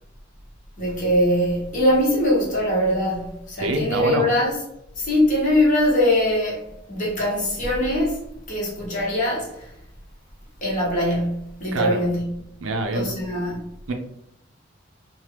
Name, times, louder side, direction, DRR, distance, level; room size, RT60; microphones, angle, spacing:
voice 1, 0.8-4.5 5.0-8.2 8.5-9.5 10.6-12.3 12.9-13.6, left 1 dB, 40° left, 1.1 m, -22 dB
voice 2, 3.6-4.3 11.7-12.0 12.6-13.1 13.9-14.0, right 2 dB, 70° right, 0.5 m, -25 dB
2.8 x 2.1 x 3.3 m
head